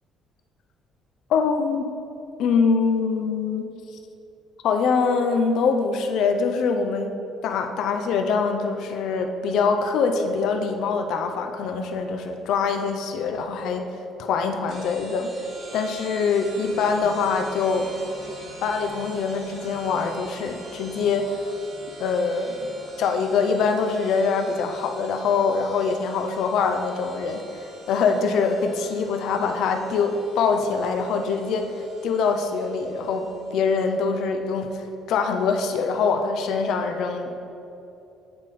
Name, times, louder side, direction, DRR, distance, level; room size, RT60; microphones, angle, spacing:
voice 1, 1.3-1.9 2.4-3.7 4.6-7.1 7.4-13.9 14.2-15.3 15.7-17.9 18.6-21.4 22.0-22.7 23.0-31.7 32.0-37.4, left 5 dB, 65° left, 5 dB, 0.5 m, -24 dB
sound 1, 14.7-33.8, right 2 dB, 45° right, 1.5 m, -44 dB
8.5 x 4.8 x 4.1 m, 2.8 s
cardioid pair, 165°, 0 cm